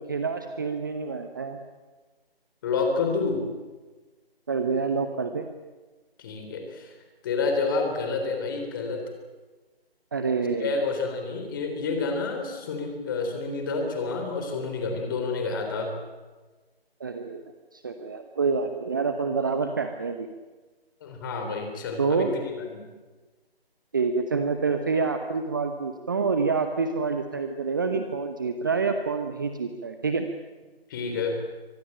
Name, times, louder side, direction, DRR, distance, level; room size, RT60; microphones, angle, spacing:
voice 1, 0.0-1.6 4.5-5.4 10.1-10.8 17.0-17.4 17.7-20.3 22.0-22.3 23.9-30.3, right 4 dB, 20° right, 7 dB, 0.9 m, -27 dB
voice 2, 2.6-3.4 6.2-6.9 7.2-9.1 10.6-15.9 21.0-22.3 22.6-22.8 30.9-31.4, left 4 dB, 20° left, 4 dB, 3.6 m, -29 dB
25.0 x 19.5 x 8.9 m, 1.3 s
figure-of-eight pair, 160°, 30 cm